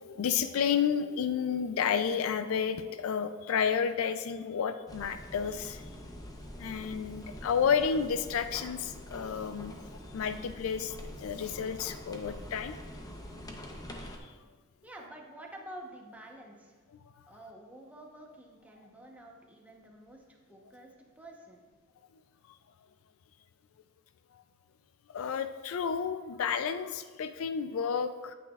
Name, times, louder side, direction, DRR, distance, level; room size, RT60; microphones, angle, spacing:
voice 1, 0.0-5.9 6.6-12.7 14.2-14.3 24.3-24.4 25.1-28.3, left 7 dB, 70° left, 10 dB, 0.4 m, -31 dB
sound 1, 4.9-14.2, equal, 20° left, 0.7 m, -45 dB
voice 2, 14.8-16.8 17.3-21.7, right 1 dB, 5° right, 0 dB, 0.9 m, -49 dB
9.0 x 8.4 x 2.3 m, 1.4 s
head